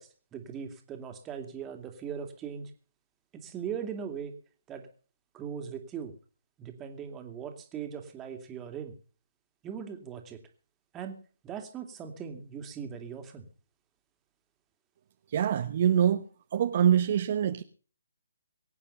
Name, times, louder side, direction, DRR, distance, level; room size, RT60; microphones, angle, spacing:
voice 1, 0.0-2.7 3.3-4.3 4.7-4.9 5.3-6.1 6.6-8.9 9.6-10.4 10.9-13.5, right 7 dB, 15° right, 5 dB, 2.6 m, -39 dB
voice 2, 15.3-16.2 16.5-17.6, right 9 dB, 45° right, 8 dB, 1.1 m, -24 dB
23.0 x 8.9 x 5.6 m, 0.41 s
figure-of-eight pair, 140°, 0 cm